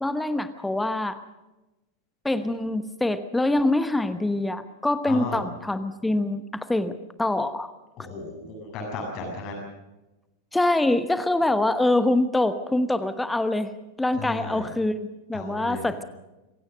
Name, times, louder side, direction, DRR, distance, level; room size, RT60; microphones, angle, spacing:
voice 1, 0.0-1.2 2.2-7.7 10.5-13.7 14.0-16.0, left 2 dB, 5° left, 12 dB, 1.1 m, -25 dB
voice 2, 5.1-5.4 8.0-9.6 14.2-14.7 15.3-15.8, left 3 dB, 40° left, 1 dB, 7.1 m, -34 dB
26.0 x 16.5 x 6.4 m, 1.0 s
figure-of-eight pair, 90°, 0 cm